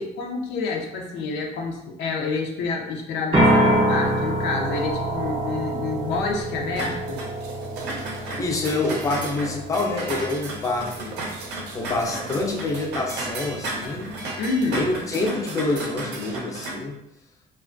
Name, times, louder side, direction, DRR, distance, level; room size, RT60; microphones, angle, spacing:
voice 1, 0.0-7.2 14.4-14.9, left 4 dB, 80° left, 1 dB, 0.5 m, -28 dB
sound 1, 3.3-15.1, right 1 dB, 30° right, 0.6 m, -27 dB
sound 2, 6.8-16.8, right 2 dB, 85° right, 0.6 m, -34 dB
voice 2, 8.4-11.2 11.7-14.1 14.7-17.0, left 2 dB, 20° left, 0 dB, 0.4 m, -26 dB
2.2 x 2.2 x 2.4 m, 0.88 s
cardioid pair, 110°, 17 cm